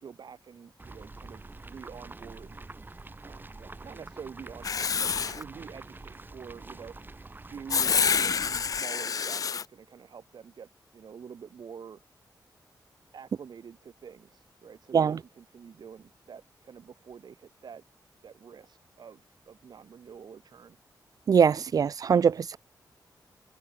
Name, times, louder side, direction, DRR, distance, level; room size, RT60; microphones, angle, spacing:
voice 1, 0.0-2.6 3.2-6.9 7.5-12.0 13.1-17.8 18.2-20.8, right 7 dB, 70° right, 2.9 m, -47 dB
sound 1, 0.8-8.8, right 2 dB, 25° right, 7.3 m, -46 dB
Writing, 4.6-5.4 7.7-9.6, left 6 dB, 50° left, 0.4 m, -27 dB
voice 2, 21.3-22.6, right 7 dB, 55° right, 0.4 m, -22 dB
wide cardioid pair, 105°, 7 cm